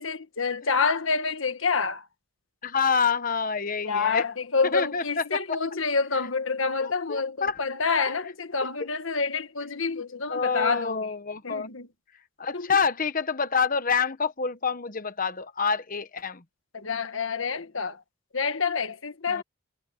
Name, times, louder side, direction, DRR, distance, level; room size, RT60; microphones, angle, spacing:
voice 1, 0.0-2.1 3.8-11.1 11.4-11.9 12.5-12.8 16.7-18.0 18.3-19.4, left 4 dB, 60° left, 1.6 m, -28 dB
voice 2, 2.6-4.2 4.7-5.4 7.1-7.6 10.3-11.7 12.4-16.4 19.3-19.4, left 5 dB, 40° left, 1.2 m, -27 dB
head